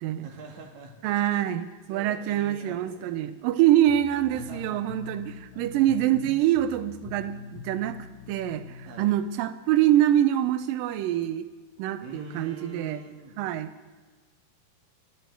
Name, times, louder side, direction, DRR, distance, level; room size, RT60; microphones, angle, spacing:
voice 1, 0.2-1.0 1.4-3.2 4.3-4.8 5.5-6.2 8.9-9.1 12.0-13.4, right 2 dB, 55° right, 2 dB, 2.9 m, -45 dB
voice 2, 1.0-8.0 8.3-11.5 11.8-13.0 13.4-13.7, right 12 dB, 85° right, 10 dB, 2.0 m, -25 dB
sound 1, 3.9-9.2, left 6 dB, 75° left, 2.7 m, -44 dB
23.5 x 11.5 x 4.6 m, 1.4 s
omnidirectional pair, 4.7 m